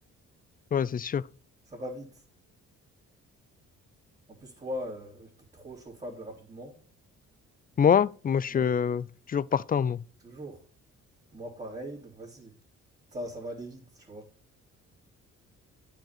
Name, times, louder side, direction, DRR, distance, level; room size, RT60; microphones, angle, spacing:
voice 1, 0.7-1.2 7.8-10.0, left 7 dB, 30° left, 0.4 m, -25 dB
voice 2, 1.7-2.2 4.3-6.8 8.5-8.7 10.2-10.6 11.3-12.6 13.1-14.3, equal, 25° right, 2.7 m, -40 dB
9.2 x 5.0 x 7.2 m
cardioid pair, 90°, 30 cm